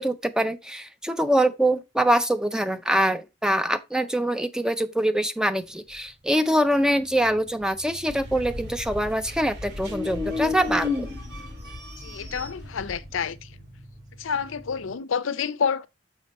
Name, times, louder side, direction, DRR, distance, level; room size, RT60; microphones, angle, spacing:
voice 1, 0.0-11.1, right 1 dB, 5° right, 0.4 m, -24 dB
sound 1, 6.7-9.3 9.7-14.9, left 4 dB, 20° right, 1.8 m, -34 dB
sound 2, 8.1-13.4, equal, 55° right, 2.1 m, -39 dB
voice 2, 12.0-13.5 14.2-15.9, left 6 dB, 75° left, 0.5 m, -28 dB
6.7 x 5.1 x 4.1 m
head